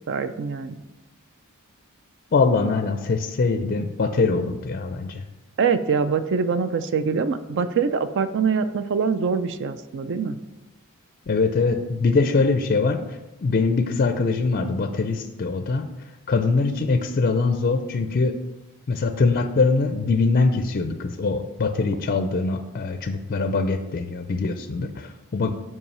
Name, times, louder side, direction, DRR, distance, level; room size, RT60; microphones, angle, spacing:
voice 1, 0.1-0.7 5.6-10.4, right 5 dB, 55° right, 12 dB, 0.4 m, -24 dB
voice 2, 2.3-5.2 11.3-13.0 13.4-15.9 16.3-18.3 18.9-25.5, left 4 dB, 40° left, 7 dB, 0.4 m, -22 dB
5.6 x 4.7 x 5.4 m, 1.0 s
head